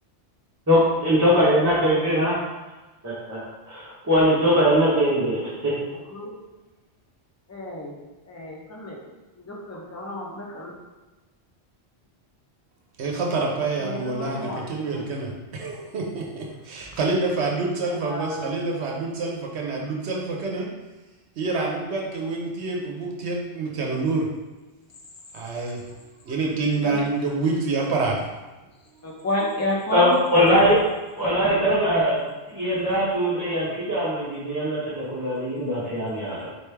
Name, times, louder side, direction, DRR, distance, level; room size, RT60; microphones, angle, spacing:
voice 1, 0.7-2.3 3.0-3.4 3.7-5.7 29.9-30.8 31.2-32.2 32.5-36.5, equal, 20° right, -10 dB, 0.9 m, -21 dB
voice 2, 5.8-6.4 7.5-8.0 8.3-9.0 9.4-10.7 13.8-14.7 14.9-15.1 17.9-19.0 26.8-27.0 29.0-30.2, left 1 dB, 20° left, -2 dB, 0.5 m, -31 dB
voice 3, 13.0-20.7 21.4-24.3 25.3-25.9 26.2-28.2, right 3 dB, 70° right, -1 dB, 0.9 m, -27 dB
4.5 x 3.2 x 3.3 m, 1.1 s
omnidirectional pair, 1.2 m